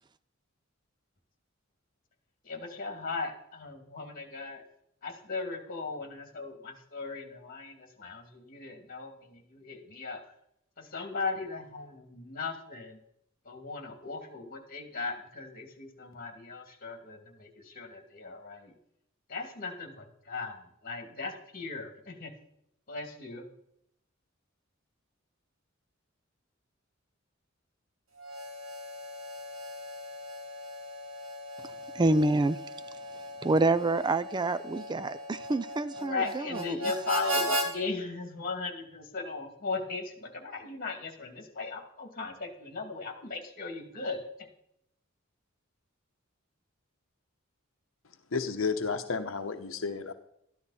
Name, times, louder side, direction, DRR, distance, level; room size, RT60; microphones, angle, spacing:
voice 1, 2.4-4.6 5.0-10.2 10.8-13.0 13.4-18.7 19.3-22.3 22.9-23.5 36.0-44.2, left 4 dB, 45° left, 2.4 m, -37 dB
Harmonica, 28.2-37.7, right 1 dB, 85° right, 2.9 m, -37 dB
voice 2, 31.6-32.6 33.4-36.8, right 2 dB, 20° right, 0.4 m, -27 dB
voice 3, 48.3-50.1, left 4 dB, 80° left, 0.9 m, -32 dB
13.5 x 12.0 x 4.2 m
head